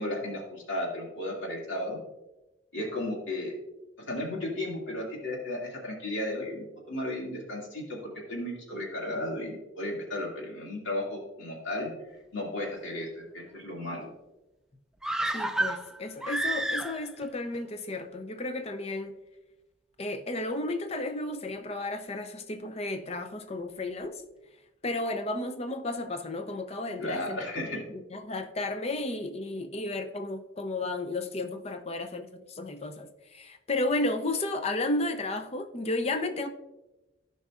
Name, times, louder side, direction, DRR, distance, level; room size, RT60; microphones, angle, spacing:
voice 1, 0.0-2.0 2.7-3.5 4.0-11.9 12.3-14.1 27.0-27.8, left 1 dB, 80° left, 2.3 m, -34 dB
sound 1, 15.0-17.3 17.5-17.6, right 1 dB, 5° right, 0.3 m, -30 dB
voice 2, 15.3-19.2 20.0-24.2 24.8-27.4 27.7-36.5, left 2 dB, 35° left, 0.6 m, -33 dB
14.5 x 5.4 x 2.5 m
head